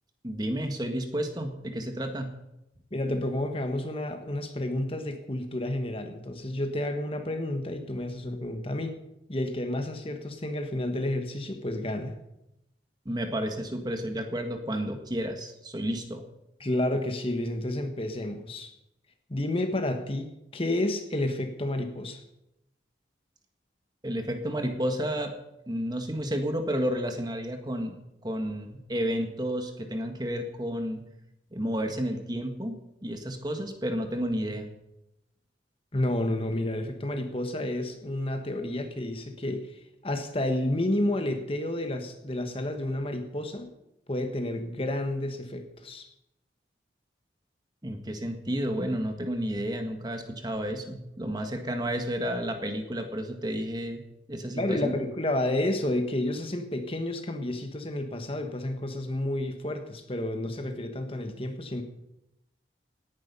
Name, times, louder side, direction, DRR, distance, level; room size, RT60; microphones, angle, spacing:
voice 1, 0.2-2.3 13.0-16.2 24.0-25.3 25.7-31.0 31.5-32.7 33.0-34.7 47.8-54.0 54.3-54.9, equal, 20° right, 5 dB, 1.7 m, -31 dB
voice 2, 2.9-9.0 9.3-12.1 16.6-18.7 19.3-22.2 35.9-43.7 44.1-46.1 54.6-61.8, left 1 dB, 30° left, 6 dB, 1.4 m, -30 dB
18.0 x 10.5 x 5.5 m, 0.87 s
head